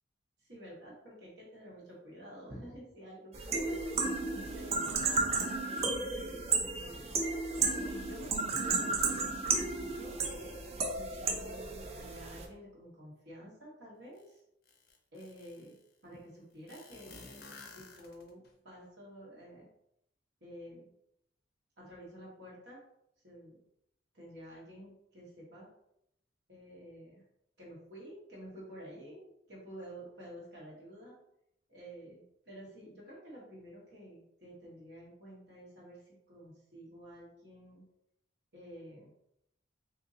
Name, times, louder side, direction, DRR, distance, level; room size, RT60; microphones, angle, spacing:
voice 1, 0.4-7.1 7.9-14.4 15.1-17.2 17.7-19.7 20.4-20.9 21.8-22.8 23.2-23.6 24.1-25.7 26.5-27.2 27.6-31.2 31.7-37.8 38.5-39.1, equal, 60° right, -5 dB, 1.2 m, -50 dB
sound 1, 3.3-12.5, right 3 dB, 35° right, 0.4 m, -33 dB
sound 2, 14.2-14.3 14.7-15.8 16.7-18.5, left 3 dB, 55° left, 0.6 m, -52 dB
3.7 x 2.7 x 2.6 m, 0.76 s
head